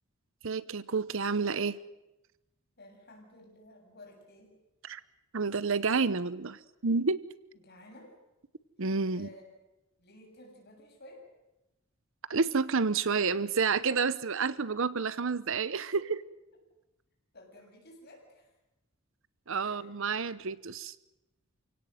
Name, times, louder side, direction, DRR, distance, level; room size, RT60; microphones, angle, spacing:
voice 1, 0.4-1.8 4.8-5.0 5.3-7.2 8.8-9.3 12.3-16.0 19.5-20.9, right 4 dB, 60° right, 17 dB, 0.8 m, -29 dB
voice 2, 2.8-4.6 7.5-8.2 9.1-9.4 10.0-11.3 15.9-16.0 17.3-18.5 19.6-19.8, left 1 dB, 50° left, 0 dB, 7.4 m, -53 dB
28.0 x 17.5 x 7.9 m, 0.97 s
head